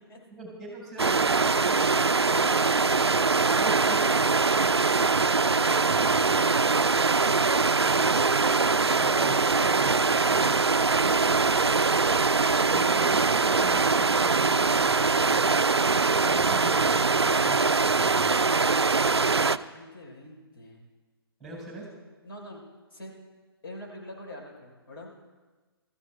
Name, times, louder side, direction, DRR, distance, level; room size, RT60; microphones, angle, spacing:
voice 1, 0.3-2.6 3.6-4.2 8.9-10.6 12.6-15.6 16.3-18.4 21.4-21.9, right 2 dB, ahead, -2 dB, 4.3 m, -42 dB
sound 1, 1.0-19.6, right 4 dB, 85° right, 0.4 m, -23 dB
voice 2, 18.7-20.8 22.2-22.6 22.9-23.1 23.6-25.1, left 1 dB, 65° left, -3 dB, 4.0 m, -45 dB
24.5 x 14.5 x 2.2 m, 1.3 s
figure-of-eight pair, 125°, 13 cm